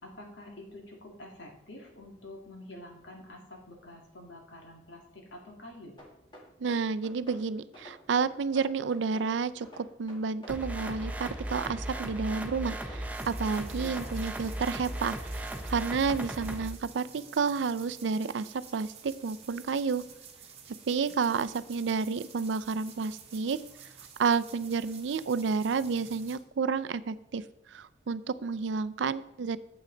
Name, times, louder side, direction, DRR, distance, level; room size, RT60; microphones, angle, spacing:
voice 1, 0.0-6.0 13.8-14.2, left 1 dB, 75° left, 1 dB, 2.1 m, -47 dB
sound 1, 6.0-7.4 7.7-9.3 9.6-11.2 11.5-13.1, equal, 25° left, 1.7 m, -49 dB
voice 2, 6.6-20.0 20.9-23.6 24.2-29.6, right 5 dB, 75° right, 14 dB, 0.4 m, -30 dB
sound 2, 10.5-16.7, right 1 dB, 10° right, 0.7 m, -37 dB
sound 3, 13.1-26.4, right 7 dB, 30° right, 1.4 m, -51 dB
9.1 x 7.9 x 3.8 m, 0.86 s
head